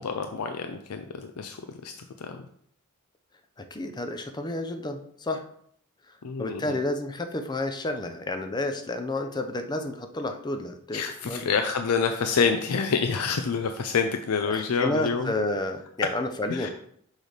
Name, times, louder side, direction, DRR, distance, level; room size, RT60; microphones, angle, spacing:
voice 1, 0.0-2.4 6.2-6.8 10.9-15.3 16.5-16.7, left 5 dB, 90° left, 7 dB, 0.5 m, -27 dB
voice 2, 3.6-5.4 6.4-11.4 14.5-16.7, left 2 dB, 20° left, 7 dB, 0.5 m, -30 dB
6.4 x 3.3 x 5.0 m, 0.66 s
head